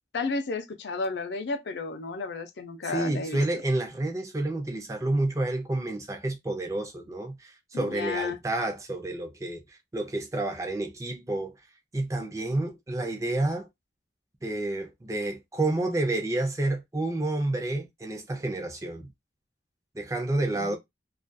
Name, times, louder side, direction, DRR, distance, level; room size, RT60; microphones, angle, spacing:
voice 1, 0.1-3.4 7.7-8.4 20.6-20.8, left 4 dB, 80° left, 0.5 m, -32 dB
voice 2, 2.8-9.6 9.9-11.5 11.9-13.7 14.4-19.1 19.9-20.8, right 2 dB, 20° right, 0.4 m, -29 dB
2.4 x 2.2 x 2.5 m
head